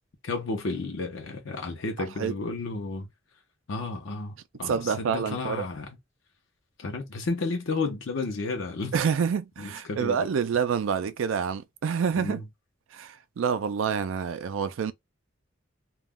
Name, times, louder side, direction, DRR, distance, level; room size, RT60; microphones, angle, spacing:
voice 1, 0.2-3.1 3.7-5.9 6.8-8.9 9.6-10.2 12.2-12.4, left 3 dB, 70° left, 0.6 m, -32 dB
voice 2, 4.7-5.7 8.9-12.4 12.9-14.9, right 6 dB, 75° right, 0.4 m, -27 dB
2.3 x 2.1 x 3.4 m
head